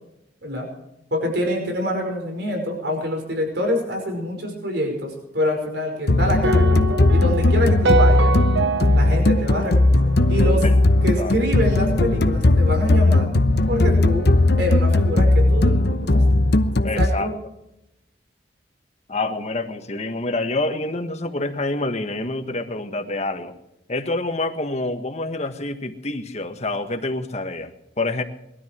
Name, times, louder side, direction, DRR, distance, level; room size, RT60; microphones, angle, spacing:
voice 1, 1.1-8.3 8.9-10.7 11.0-13.3 13.7-14.3 14.6-16.3 17.0-17.3, equal, 65° right, 2 dB, 5.3 m, -26 dB
sound 1, 6.1-17.1, left 2 dB, 65° left, 0.9 m, -17 dB
sound 2, 6.4-10.7, right 3 dB, 85° right, 0.9 m, -25 dB
voice 2, 16.8-17.3 19.1-23.5 23.9-28.2, left 2 dB, 40° left, 6 dB, 1.6 m, -27 dB
21.0 x 13.0 x 4.6 m, 0.85 s
head